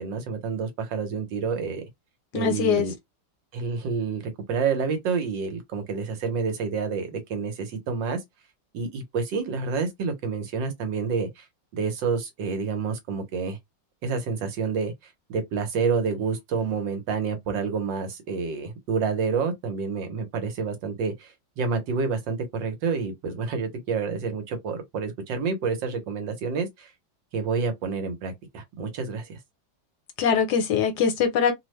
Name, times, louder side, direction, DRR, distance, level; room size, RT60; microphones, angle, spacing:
voice 1, 0.0-1.8 2.3-2.9 3.5-8.2 8.7-11.5 11.7-13.6 14.0-26.9 27.3-29.4, right 5 dB, 85° right, 1.6 m, -28 dB
voice 2, 2.3-2.8 30.2-31.5, left 7 dB, 70° left, 1.3 m, -22 dB
3.4 x 2.1 x 3.1 m
omnidirectional pair, 1.9 m